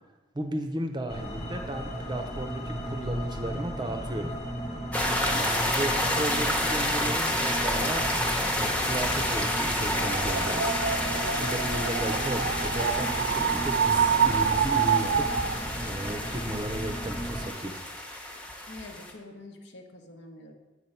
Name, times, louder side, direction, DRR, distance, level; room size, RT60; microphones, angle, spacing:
voice 1, 0.3-4.3 5.2-8.1 8.5-10.8 11.1-17.8, right 1 dB, 25° right, 6 dB, 0.6 m, -34 dB
sound 1, 1.1-17.5, equal, 35° left, 1.1 m, -35 dB
sound 2, 4.9-19.1, left 1 dB, 10° left, 0.9 m, -29 dB
sound 3, 9.9-15.6, right 7 dB, 60° right, 0.3 m, -27 dB
voice 2, 18.7-20.5, left 2 dB, 65° left, 3 dB, 1.0 m, -46 dB
8.4 x 4.5 x 5.5 m, 1.1 s
head